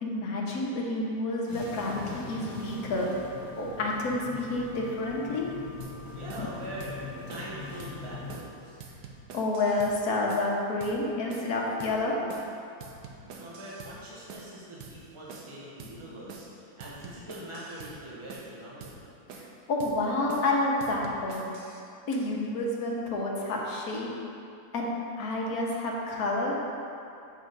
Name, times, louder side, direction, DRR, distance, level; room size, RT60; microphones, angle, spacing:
voice 1, 0.0-3.1 3.6-5.5 9.3-12.2 19.3-21.5 22.1-24.1 24.7-24.9 25.2-26.5, left 2 dB, 65° left, -3 dB, 1.5 m, -29 dB
sound 1, 1.5-8.4, left 3 dB, 15° left, 0.8 m, -41 dB
sound 2, 5.8-6.0 6.3-6.5 6.8-7.0 7.3-7.5 7.8-8.0 8.3-8.5 8.8-10.0 10.3-10.5 10.8-11.0 11.3-11.5 11.8-12.0 12.3-12.5 12.8-14.0 14.3-14.5 14.8-15.0 15.3-15.5 15.8-16.0 16.3-16.5 16.8-18.0 18.3-18.5 18.8-19.0 19.3-19.5 19.8-20.0 20.3-20.5 20.8-21.8, right 5 dB, 85° right, 1.3 m, -46 dB
voice 2, 6.1-7.0 7.3-8.8 13.2-19.0, right 1 dB, 20° right, -7 dB, 1.2 m, -43 dB
7.5 x 5.5 x 4.0 m, 2.5 s
omnidirectional pair, 1.7 m